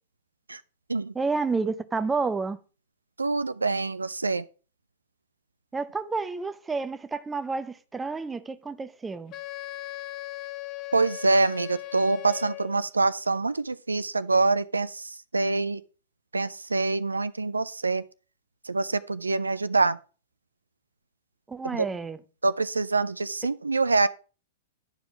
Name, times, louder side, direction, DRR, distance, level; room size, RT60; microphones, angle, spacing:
voice 1, 1.1-2.6 5.7-9.3 21.5-22.2, right 4 dB, 10° right, 0.6 m, -30 dB
voice 2, 3.2-4.5 10.9-15.8 16.3-18.0 18.7-20.0 21.7-21.9 22.4-24.1, right 3 dB, 85° right, 0.4 m, -25 dB
Wind instrument woodwind instrument, 9.3-12.9, left 17 dB, 35° left, 0.6 m, -38 dB
10.5 x 4.8 x 5.0 m
figure-of-eight pair, 105°, 0 cm